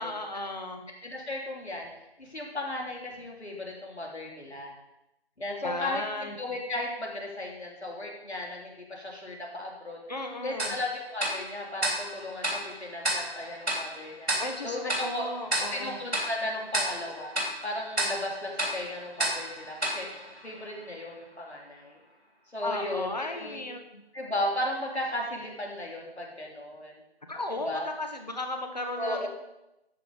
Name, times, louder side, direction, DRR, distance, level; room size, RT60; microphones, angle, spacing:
voice 1, 0.0-0.8 5.6-6.4 10.1-10.8 14.4-16.0 22.6-24.0 27.3-29.3, left 2 dB, 40° left, 4 dB, 1.4 m, -35 dB
voice 2, 1.0-1.9 2.2-4.7 5.4-10.0 10.4-14.3 14.6-15.3 15.6-17.4 17.6-20.1 20.4-22.0 22.5-23.6 24.1-27.0 27.6-27.9 29.0-29.3, left 1 dB, 85° left, -1 dB, 3.5 m, -35 dB
Tick-tock, 10.6-21.0, right 1 dB, 75° right, 3.7 m, -33 dB
12.5 x 5.6 x 5.2 m, 0.90 s
figure-of-eight pair, 175°, 32 cm